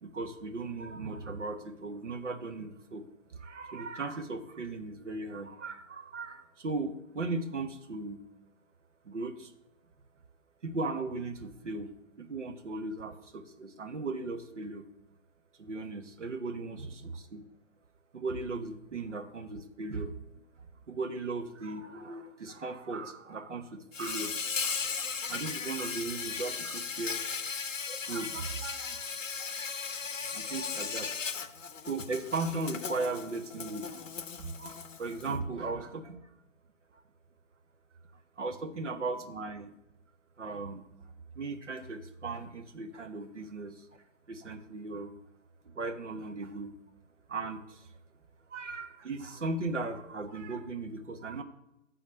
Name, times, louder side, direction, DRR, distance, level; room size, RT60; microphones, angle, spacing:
voice 1, 0.0-8.2 9.0-9.5 10.6-11.9 12.2-14.9 15.6-17.4 18.1-20.1 20.9-27.2 27.8-29.1 30.3-31.2 31.8-36.3 38.4-39.7 40.4-40.8 41.3-43.9 44.3-45.2 45.7-46.7 47.3-47.9 48.5-51.4, right 3 dB, 65° right, 6 dB, 1.2 m, -37 dB
Insect, 23.9-35.3, left 5 dB, 70° left, 0.7 m, -37 dB
7.6 x 4.2 x 6.7 m, 0.86 s
figure-of-eight pair, 140°, 40 cm